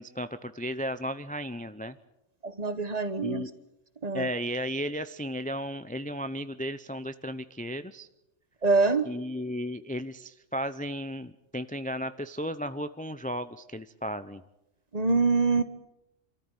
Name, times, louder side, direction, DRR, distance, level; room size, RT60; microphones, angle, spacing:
voice 1, 0.0-2.0 3.2-3.5 4.1-8.1 9.0-14.4, equal, 10° left, 11 dB, 0.5 m, -34 dB
voice 2, 2.4-3.4 4.0-4.2 8.6-9.1 14.9-15.6, right 4 dB, 35° right, 11 dB, 1.3 m, -24 dB
27.0 x 14.0 x 9.1 m, 0.91 s
omnidirectional pair, 1.3 m